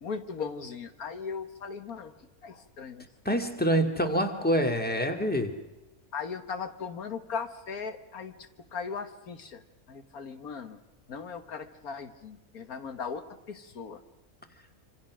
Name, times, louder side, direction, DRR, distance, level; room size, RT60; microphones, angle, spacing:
voice 1, 0.0-2.1 2.4-3.1 6.1-8.3 8.7-9.6 9.9-10.8 11.1-14.0, left 5 dB, 80° left, 9 dB, 1.9 m, -38 dB
voice 2, 3.3-5.6, equal, 5° left, 5 dB, 2.2 m, -26 dB
26.5 x 26.5 x 6.3 m, 1.1 s
omnidirectional pair, 1.5 m